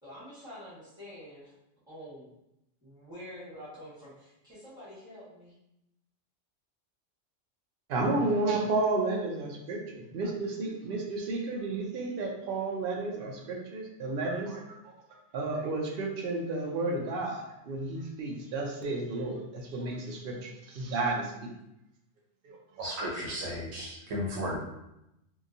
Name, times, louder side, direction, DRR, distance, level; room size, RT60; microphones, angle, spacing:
voice 1, 0.0-1.5 1.9-2.3 2.8-5.6, equal, 5° right, -11 dB, 1.2 m, -47 dB
voice 2, 7.9-14.6 15.3-21.5 22.4-22.6, right 2 dB, 60° right, 0 dB, 0.6 m, -32 dB
voice 3, 22.8-24.6, equal, 85° right, -3 dB, 1.1 m, -34 dB
2.9 x 2.2 x 2.5 m, 0.87 s
omnidirectional pair, 1.3 m